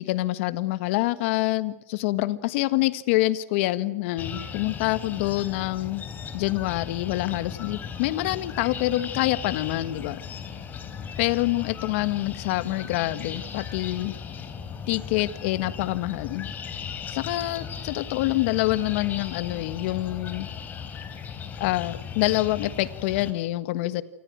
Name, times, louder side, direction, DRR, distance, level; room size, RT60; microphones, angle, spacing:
voice 1, 0.0-6.0 6.3-10.2 11.2-14.1 14.9-16.5 17.1-20.5 21.6-24.0, left 17 dB, 55° left, 14 dB, 1.6 m, -26 dB
sound 1, 4.2-23.3, left 7 dB, 25° left, 3.5 m, -37 dB
29.0 x 25.5 x 6.4 m, 0.87 s
supercardioid pair, 140°, 8 cm